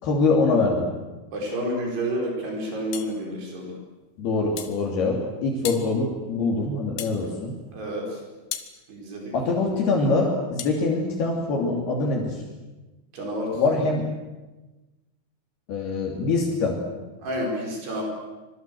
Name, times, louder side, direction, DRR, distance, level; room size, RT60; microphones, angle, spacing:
voice 1, 0.0-0.9 4.2-7.5 9.3-12.4 13.5-14.0 15.7-16.8, left 3 dB, 70° left, 0 dB, 4.9 m, -24 dB
voice 2, 1.3-3.8 7.7-8.2 8.9-9.3 13.1-13.8 17.2-18.0, equal, 80° right, 0 dB, 6.9 m, -30 dB
sound 1, 2.9-3.2 4.6-4.8 5.6-5.9 7.0-7.2 8.5-8.7 10.6-10.8, left 10 dB, 90° left, 3.6 m, -34 dB
25.5 x 24.0 x 7.8 m, 1.2 s
omnidirectional pair, 4.6 m